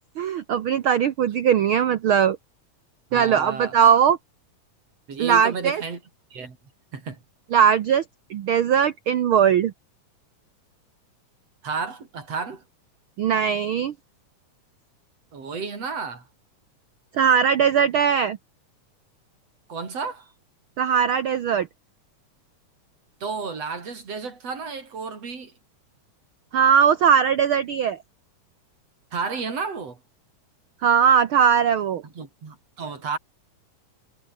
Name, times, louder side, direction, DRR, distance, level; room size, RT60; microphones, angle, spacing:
voice 1, 0.2-2.4 3.1-4.2 5.2-5.8 7.5-8.0 8.3-9.7 13.2-13.9 17.1-18.4 20.8-21.7 26.5-28.0 30.8-32.0, right 8 dB, 80° right, 1.1 m, -19 dB
voice 2, 3.1-3.8 5.1-6.0 6.3-6.6 6.9-7.2 11.6-12.6 15.3-16.2 19.7-20.3 23.2-25.5 29.1-30.0 32.0-33.2, right 5 dB, 50° right, 5.1 m, -32 dB
omnidirectional pair, 3.7 m